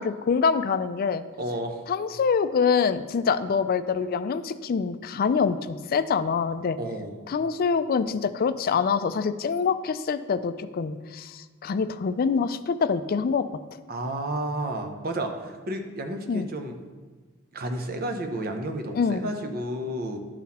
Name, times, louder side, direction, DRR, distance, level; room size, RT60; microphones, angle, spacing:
voice 1, 0.0-1.2 1.9-6.8 7.3-13.5 16.3-16.5 18.9-19.3, left 5 dB, 45° left, 12 dB, 0.3 m, -25 dB
voice 2, 1.4-1.9 6.8-7.2 13.9-16.8 17.5-20.2, right 1 dB, 45° right, 5 dB, 0.8 m, -31 dB
11.0 x 4.1 x 4.2 m, 1.4 s
head